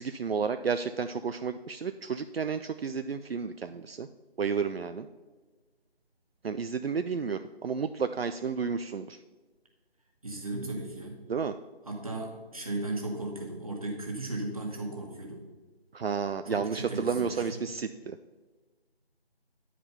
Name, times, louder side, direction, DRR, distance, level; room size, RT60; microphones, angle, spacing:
voice 1, 0.0-4.1 4.4-5.1 6.4-9.2 11.3-11.5 15.9-18.2, right 6 dB, 70° right, 9 dB, 0.5 m, -31 dB
voice 2, 10.2-11.2 11.9-15.4 16.5-17.6, right 2 dB, 35° right, 1 dB, 1.5 m, -36 dB
9.8 x 5.0 x 5.4 m, 1.3 s
figure-of-eight pair, 170°, 31 cm